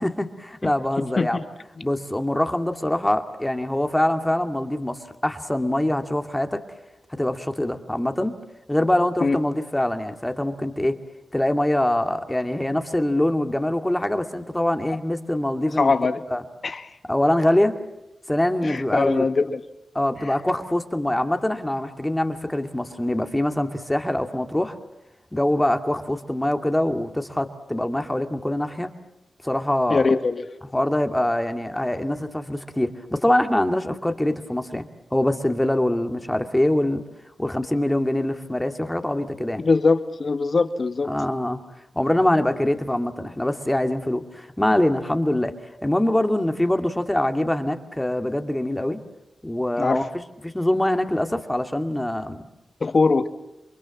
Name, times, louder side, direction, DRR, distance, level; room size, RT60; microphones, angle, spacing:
voice 1, 0.0-1.4 1.8-6.6 7.1-8.4 8.7-11.0 11.3-16.0 16.3-16.4 17.1-17.7 18.3-19.3 19.9-24.8 25.3-28.9 29.4-30.1 30.7-37.0 37.4-39.6 41.1-41.6 41.9-45.5 45.8-49.0 49.4-50.1 50.4-52.4, left 1 dB, 10° left, 6 dB, 2.5 m, -24 dB
voice 2, 15.8-16.2 16.6-16.9 18.6-19.6 29.9-30.5 39.6-41.1 49.8-50.0 52.8-53.3, left 4 dB, 55° left, 10 dB, 1.8 m, -21 dB
28.5 x 23.5 x 7.3 m, 0.94 s
cardioid pair, 55°, 0 cm